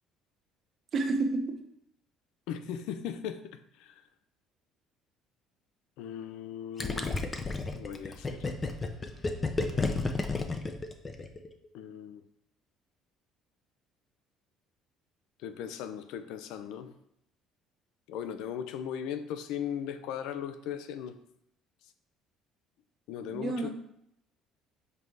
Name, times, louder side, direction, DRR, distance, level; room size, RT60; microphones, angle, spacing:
voice 1, 0.9-1.5 23.3-23.7, right 3 dB, 40° right, 0.9 m, -29 dB
voice 2, 2.5-4.0 6.0-7.3 7.7-8.4 11.7-12.2 15.4-16.9 18.1-21.2 23.1-23.7, left 9 dB, 80° left, 0.5 m, -38 dB
Gurgling, 6.8-11.5, left 3 dB, 20° left, 0.6 m, -31 dB
5.5 x 4.0 x 4.6 m
cardioid pair, 140°, 0 cm